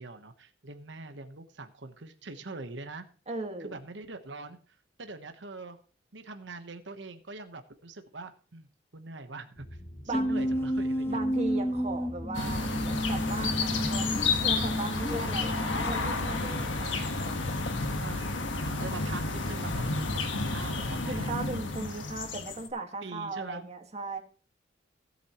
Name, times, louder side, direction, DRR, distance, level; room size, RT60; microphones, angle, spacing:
voice 1, 0.0-3.0 3.6-4.6 5.0-5.8 6.1-8.7 8.9-9.7 10.0-11.2 13.7-14.1 18.0-21.3 23.0-23.7, right 3 dB, 65° right, 8 dB, 1.1 m, -43 dB
voice 2, 3.3-3.8 10.1-10.5 11.1-17.0 21.1-24.2, right 3 dB, 35° right, 3 dB, 1.7 m, -38 dB
sound 1, 9.5-21.1, equal, 55° left, 2.3 m, -48 dB
sound 2, 10.1-16.8, equal, 15° left, 0.8 m, -32 dB
sound 3, 12.3-22.7, left 3 dB, 85° left, 1.5 m, -31 dB
17.0 x 8.3 x 3.0 m, 0.40 s
head